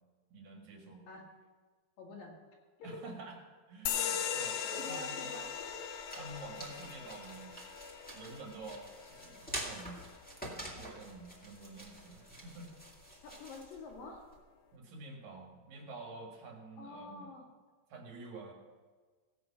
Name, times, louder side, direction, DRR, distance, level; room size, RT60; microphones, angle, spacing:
voice 1, 0.3-1.1 2.8-3.4 3.7-4.6 4.9-5.2 6.2-7.6 8.1-10.0 10.5-12.7 14.7-17.3 17.9-18.5, right 3 dB, 70° right, 1 dB, 3.2 m, -48 dB
voice 2, 2.0-2.3 2.8-3.0 4.6-5.8 13.2-14.3 16.8-17.4, left 3 dB, 70° left, -1 dB, 3.4 m, -47 dB
sound 1, 3.9-10.9, left 8 dB, 85° left, 1.6 m, -40 dB
sound 2, 5.4-14.4, right 1 dB, 5° left, 1.1 m, -48 dB
16.0 x 7.9 x 5.7 m, 1.4 s
omnidirectional pair, 4.2 m